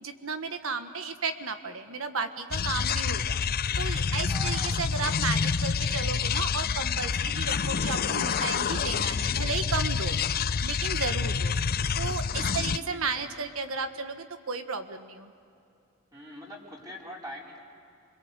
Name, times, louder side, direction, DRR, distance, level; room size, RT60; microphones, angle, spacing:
voice 1, 0.0-3.4 3.8-10.2 10.6-11.5 12.0-15.3, right 4 dB, 80° right, 8 dB, 1.5 m, -34 dB
sound 1, 2.5-12.8, left 6 dB, 45° left, 0.5 m, -28 dB
voice 2, 4.3-4.8 12.4-13.3 16.1-17.6, equal, 20° right, -3 dB, 4.8 m, -43 dB
28.5 x 22.0 x 8.2 m, 2.6 s
head